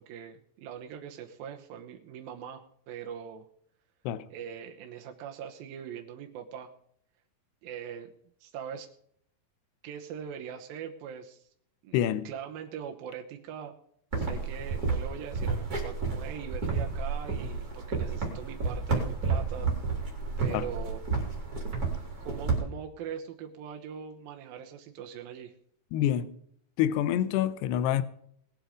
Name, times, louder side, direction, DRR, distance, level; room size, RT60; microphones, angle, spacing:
voice 1, 0.0-3.5 4.3-6.7 7.6-8.1 8.4-8.9 9.8-11.5 11.8-13.8 14.2-19.7 20.0-20.1 20.4-21.0 22.2-25.5, right 8 dB, 70° right, 2.6 m, -41 dB
voice 2, 11.9-12.3 20.5-20.7 25.9-26.4 26.8-28.0, left 11 dB, 85° left, 2.8 m, -27 dB
sound 1, 14.1-22.6, right 4 dB, 25° right, 3.5 m, -31 dB
20.5 x 8.0 x 5.1 m
omnidirectional pair, 4.7 m